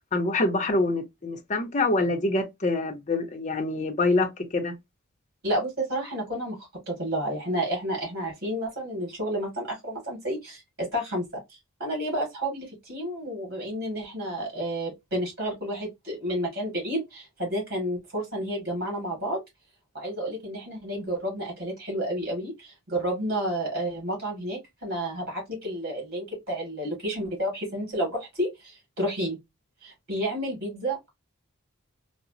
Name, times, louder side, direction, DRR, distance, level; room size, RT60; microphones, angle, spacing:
voice 1, 0.1-4.7, left 2 dB, 35° left, 0.6 m, -25 dB
voice 2, 5.4-19.4 19.9-29.4 29.8-31.1, right 1 dB, 50° right, 2.1 m, -31 dB
3.9 x 2.0 x 2.5 m
head